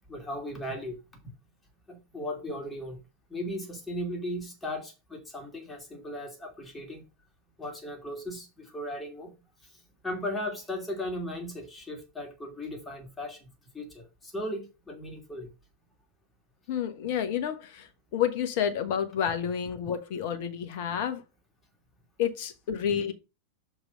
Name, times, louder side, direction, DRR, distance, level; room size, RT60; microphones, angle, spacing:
voice 1, 0.1-1.0 1.9-3.0 3.3-7.0 7.6-9.3 9.6-15.5, left 1 dB, 10° left, 2.7 m, -37 dB
voice 2, 16.7-21.2 22.2-23.1, left 9 dB, 50° left, 1.3 m, -30 dB
6.5 x 4.7 x 5.3 m
figure-of-eight pair, 90°, 0 cm